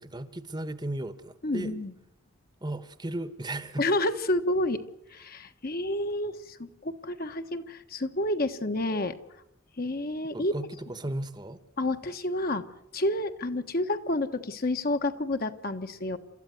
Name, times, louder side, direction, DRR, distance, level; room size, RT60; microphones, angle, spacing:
voice 1, 0.0-1.7 2.6-3.8 10.3-11.6, right 1 dB, 20° right, 1.1 m, -35 dB
voice 2, 1.4-1.9 3.8-4.8 5.1-9.2 9.8-10.5 11.8-12.6 12.9-16.2, left 1 dB, 45° left, 1.3 m, -29 dB
29.0 x 14.0 x 9.5 m
head